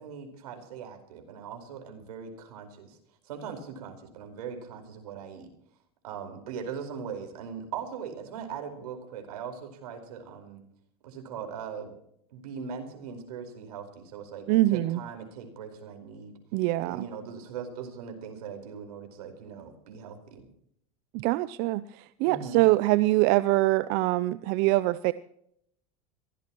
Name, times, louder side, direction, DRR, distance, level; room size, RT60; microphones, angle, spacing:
voice 1, 0.0-3.0 3.2-5.5 6.0-10.6 11.0-11.9 12.3-16.3 16.8-20.5 22.2-22.6, right 7 dB, 85° right, 5 dB, 4.7 m, -40 dB
voice 2, 14.5-15.0 16.5-17.0 21.1-25.1, right 18 dB, 55° right, 15 dB, 0.6 m, -24 dB
23.0 x 17.0 x 3.1 m, 0.70 s
supercardioid pair, 120°, 19 cm